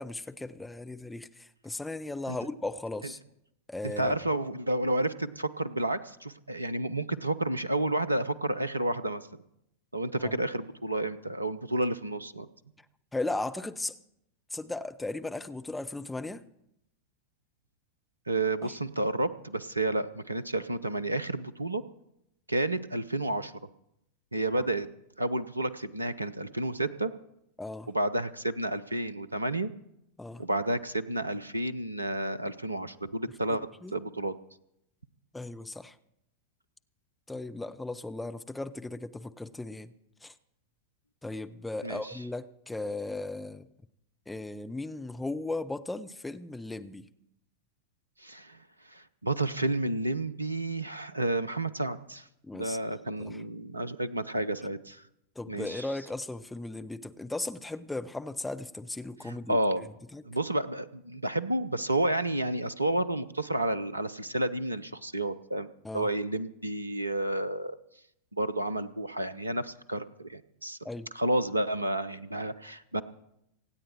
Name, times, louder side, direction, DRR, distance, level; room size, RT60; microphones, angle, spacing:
voice 1, 0.0-3.2 3.7-4.1 10.2-10.4 13.1-14.0 14.5-16.4 18.6-18.7 27.6-27.9 30.2-30.4 33.8-33.9 35.3-36.0 37.3-39.9 40.2-40.3 41.2-43.7 44.3-47.1 52.4-52.8 53.2-53.4 55.4-60.2 65.8-66.1 70.8-71.1, left 2 dB, 5° left, 0.7 m, -37 dB
voice 2, 3.8-9.4 9.9-12.5 18.3-21.8 22.5-23.5 24.3-24.9 25.2-27.1 27.9-29.7 30.4-34.3 41.8-42.1 48.2-48.6 48.9-52.3 52.5-55.0 55.5-55.9 59.2-59.9 60.2-67.8 68.3-70.8 71.1-73.0, right 1 dB, 85° right, 0.7 m, -31 dB
25.5 x 9.0 x 4.5 m
figure-of-eight pair, 90°, 0 cm